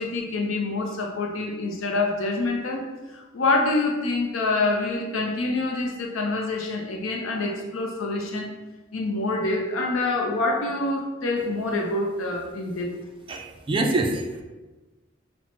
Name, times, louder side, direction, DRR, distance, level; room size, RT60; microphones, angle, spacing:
voice 1, 0.0-2.8 3.1-8.5 8.9-12.9, left 2 dB, 85° left, 1 dB, 0.5 m, -26 dB
voice 2, 13.3-14.4, right 2 dB, 25° right, 2 dB, 0.4 m, -25 dB
5.6 x 2.1 x 3.0 m, 1.2 s
head